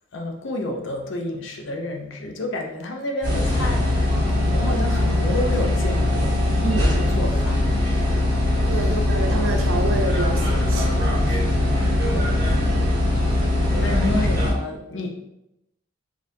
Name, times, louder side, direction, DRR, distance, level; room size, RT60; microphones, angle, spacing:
voice 1, 0.1-4.1 4.5-6.4 6.7-7.6 8.7-9.0 10.7-10.9 12.0-12.4 12.9-13.1 13.7-15.1, left 1 dB, 65° left, 3 dB, 0.5 m, -30 dB
sound 1, 3.2-14.5, left 1 dB, 40° right, 1.3 m, -21 dB
voice 2, 6.6-7.0 8.7-11.0 11.2-11.4, right 3 dB, 75° right, 3 dB, 0.5 m, -28 dB
4.2 x 2.5 x 2.5 m, 0.84 s
head